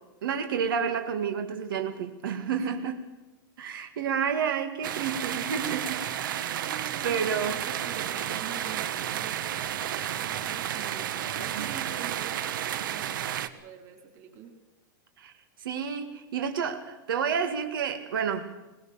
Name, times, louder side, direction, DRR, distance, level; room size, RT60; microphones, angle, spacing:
voice 1, 0.2-2.9 3.6-6.6 7.0-7.6 11.6-11.7 15.2-15.3 15.6-18.6, right 7 dB, 90° right, 2.1 m, -30 dB
voice 2, 2.6-3.0 6.6-14.5, right 7 dB, 30° right, 3.2 m, -45 dB
sound 1, 4.8-13.5, right 10 dB, 70° right, 1.2 m, -32 dB
21.5 x 20.0 x 7.1 m
supercardioid pair, 170°, 11 cm